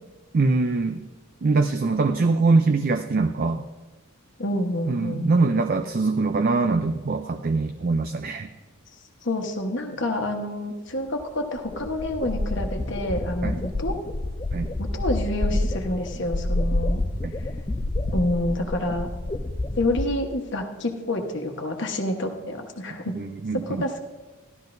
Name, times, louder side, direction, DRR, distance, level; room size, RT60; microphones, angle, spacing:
voice 1, 0.3-1.0 1.4-3.6 4.9-8.5 13.4-13.6 14.5-14.7 17.2-17.3 23.1-23.9, right 3 dB, 45° right, 7 dB, 0.4 m, -23 dB
voice 2, 4.4-5.3 9.2-14.0 14.8-17.0 18.1-19.1 19.8-23.2 23.7-24.0, left 1 dB, 55° left, 4 dB, 1.2 m, -28 dB
sound 1, 11.2-11.3 11.6-20.1, left 1 dB, 20° left, 0.4 m, -28 dB
15.0 x 12.0 x 2.6 m, 1.2 s
head